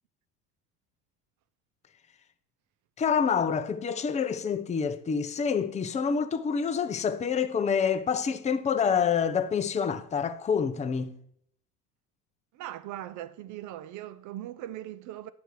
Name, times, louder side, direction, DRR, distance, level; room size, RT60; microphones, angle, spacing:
voice 1, 3.0-11.2, left 6 dB, 15° left, 0.6 m, -27 dB
voice 2, 12.5-15.3, right 13 dB, 40° right, 0.5 m, -39 dB
9.3 x 6.6 x 4.7 m
hypercardioid pair, 75°, 46 cm